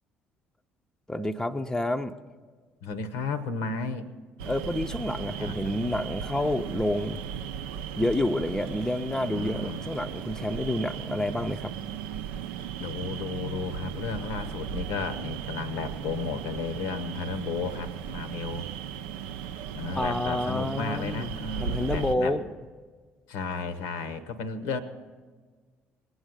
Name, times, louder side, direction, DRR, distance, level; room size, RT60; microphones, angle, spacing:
voice 1, 1.1-2.1 4.5-7.2 8.0-11.7 20.0-21.3 21.6-22.4, left 1 dB, 10° left, 7 dB, 0.6 m, -29 dB
voice 2, 2.8-4.1 5.4-5.5 9.2-9.9 12.8-18.7 19.7-22.4 23.3-24.8, left 4 dB, 70° left, 11 dB, 0.9 m, -33 dB
sound 1, 4.4-22.2, right 8 dB, 70° right, 0.5 m, -36 dB
19.5 x 8.1 x 6.5 m, 1.5 s
figure-of-eight pair, 50°, 6 cm